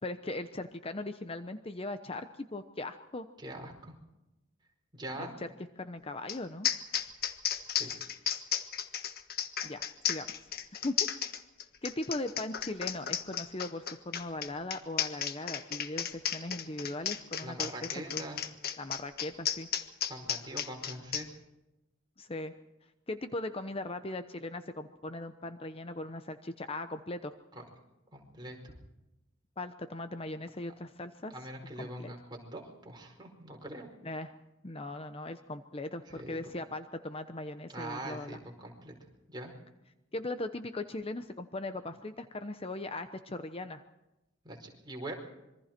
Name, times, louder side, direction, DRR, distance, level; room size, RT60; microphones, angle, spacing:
voice 1, 0.0-3.3 5.2-5.5 5.8-6.7 9.6-9.8 10.1-10.4 10.8-11.0 11.8-18.2 18.8-19.7 22.2-22.5 23.1-27.4 29.6-31.3 31.8-32.1 34.0-34.3 34.6-38.4 40.1-43.8, left 2 dB, 30° left, 9 dB, 0.9 m, -39 dB
voice 2, 3.4-3.9 4.9-5.3 7.6-7.9 17.4-18.4 20.1-21.3 27.5-27.6 28.1-28.7 31.3-33.9 36.1-36.5 37.7-38.9 39.3-39.5 44.4-45.1, right 1 dB, 20° right, 1 dB, 4.8 m, -43 dB
sound 1, 6.3-6.4 6.6-21.2, left 9 dB, 50° left, 1.4 m, -33 dB
26.5 x 23.5 x 4.5 m, 0.97 s
head